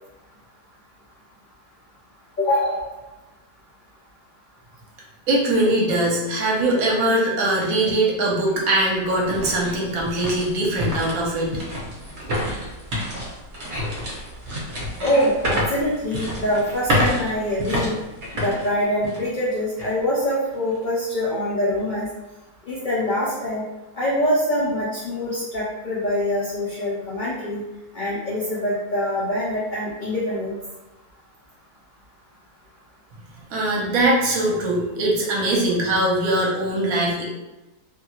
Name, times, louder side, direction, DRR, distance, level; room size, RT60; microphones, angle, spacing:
voice 1, 2.4-2.8 15.0-18.0 18.3-22.1 22.7-23.6 24.0-27.6 27.9-30.6, left 1 dB, 90° left, -7 dB, 0.4 m, -24 dB
voice 2, 5.3-11.5 33.5-37.3, right 1 dB, 70° right, -3 dB, 1.1 m, -21 dB
sound 1, 7.9-8.0 8.5-19.4 19.8-19.9 20.5-20.8, equal, 50° right, 1.0 m, -28 dB
2.7 x 2.3 x 2.9 m, 1.0 s
omnidirectional pair, 1.7 m